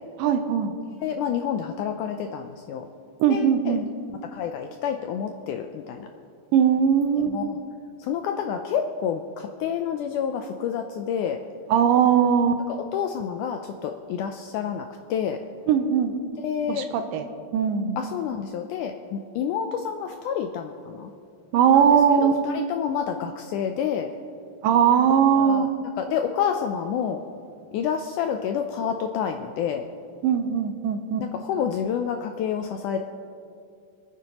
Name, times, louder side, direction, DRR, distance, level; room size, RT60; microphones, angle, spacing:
voice 1, 0.2-0.7 3.2-3.8 6.5-7.3 11.7-12.6 15.7-16.1 16.8-17.3 17.5-18.0 21.5-22.3 24.6-25.7 30.2-31.3, right 8 dB, 80° right, 7 dB, 2.3 m, -20 dB
voice 2, 1.0-2.9 3.3-3.8 4.1-6.1 7.2-7.6 8.0-11.4 12.7-15.4 16.4-16.9 18.0-21.1 21.7-24.1 25.0-27.2 27.7-29.8 31.2-33.0, left 8 dB, 80° left, 5 dB, 1.8 m, -29 dB
27.0 x 9.5 x 2.9 m, 2.4 s
omnidirectional pair, 4.1 m